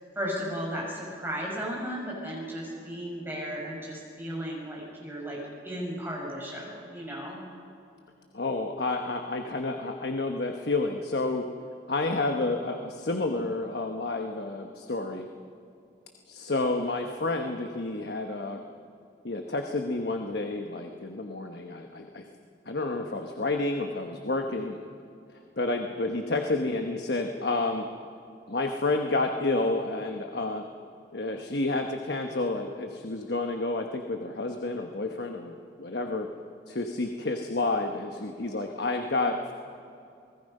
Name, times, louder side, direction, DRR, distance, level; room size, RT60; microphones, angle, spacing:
voice 1, 0.1-7.4, equal, 10° right, -3 dB, 6.1 m, -35 dB
voice 2, 8.3-11.4 11.9-15.3 16.3-18.6 19.2-22.2 22.7-24.8 25.6-27.8 28.5-30.6 31.1-36.3 36.7-39.5, left 2 dB, 65° left, 4 dB, 1.2 m, -30 dB
28.0 x 20.0 x 5.5 m, 2.6 s
head